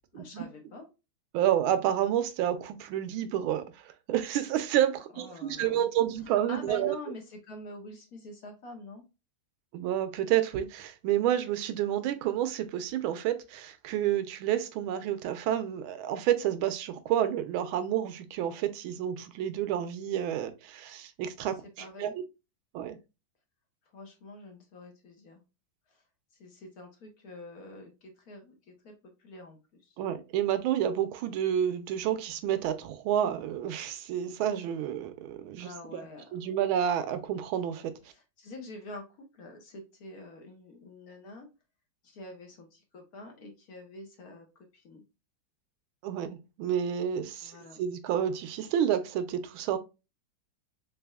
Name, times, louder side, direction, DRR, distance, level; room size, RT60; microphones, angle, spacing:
voice 1, 0.1-0.9 5.1-5.9 6.3-9.0 21.8-22.1 23.9-25.4 25.9-26.0 26.4-30.0 35.6-36.2 38.1-41.5 42.0-45.0 47.4-47.8, left 2 dB, 55° left, 1.1 m, -46 dB
voice 2, 1.3-3.7 4.1-6.9 9.7-21.6 22.0-22.2 22.7-23.0 30.0-36.0 36.3-37.9 46.0-49.8, right 10 dB, 90° right, 1.4 m, -29 dB
4.0 x 3.4 x 2.2 m
omnidirectional pair, 2.2 m